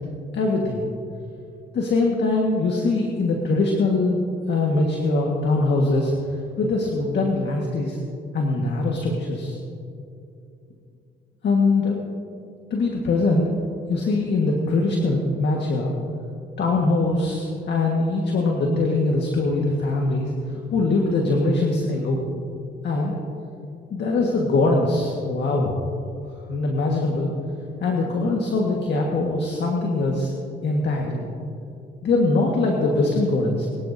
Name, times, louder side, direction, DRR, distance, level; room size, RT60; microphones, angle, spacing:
voice 1, 0.3-0.8 1.7-4.2 4.5-8.0 8.3-9.6 11.4-12.0 12.7-13.5 13.9-15.9 16.6-22.2 22.8-23.1 23.9-25.8 26.5-27.3 27.8-30.3 30.6-31.2 32.0-33.7, left 2 dB, 60° left, -1 dB, 1.8 m, -22 dB
23.0 x 11.5 x 2.8 m, 2.6 s
cardioid pair, 90°, 20 cm